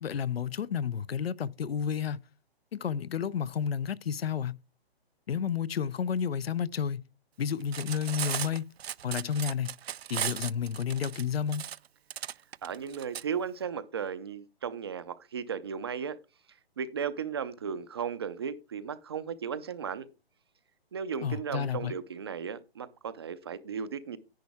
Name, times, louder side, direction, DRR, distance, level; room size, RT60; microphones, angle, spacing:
voice 1, 0.0-2.2 2.7-4.6 5.3-7.0 7.4-8.6 9.0-9.7 10.1-11.7 21.2-21.9, left 7 dB, 70° left, 0.7 m, -31 dB
Cutlery silverware, 7.6-13.2, right 10 dB, 75° right, 0.5 m, -36 dB
voice 2, 12.6-16.2 16.8-20.1 20.9-24.2, right 7 dB, 25° right, 0.5 m, -35 dB
10.5 x 9.4 x 3.5 m
hypercardioid pair, 160°, 32 cm